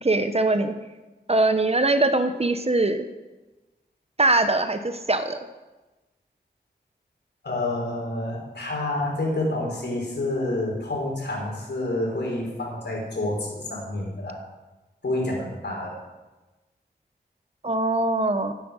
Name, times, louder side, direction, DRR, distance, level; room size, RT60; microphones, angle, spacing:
voice 1, 0.0-0.7 1.3-3.1 4.2-5.4 17.6-18.5, right 2 dB, 35° right, 9 dB, 1.0 m, -22 dB
voice 2, 7.4-14.4 15.0-16.0, left 2 dB, 75° left, -2 dB, 5.3 m, -28 dB
13.5 x 10.0 x 6.5 m, 1.1 s
wide cardioid pair, 80°, 18 cm